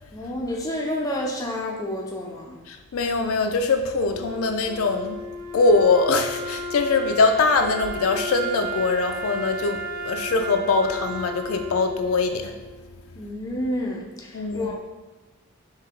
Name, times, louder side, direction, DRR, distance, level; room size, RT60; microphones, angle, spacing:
voice 1, 0.1-2.6 13.2-14.8, left 1 dB, 15° left, -1 dB, 0.5 m, -29 dB
voice 2, 2.7-5.2 5.5-12.5 14.3-14.7, left 3 dB, 65° left, 6 dB, 0.4 m, -22 dB
Wind instrument woodwind instrument, 4.1-13.2, right 1 dB, 90° right, 0.8 m, -34 dB
3.9 x 2.9 x 4.4 m, 1.2 s
head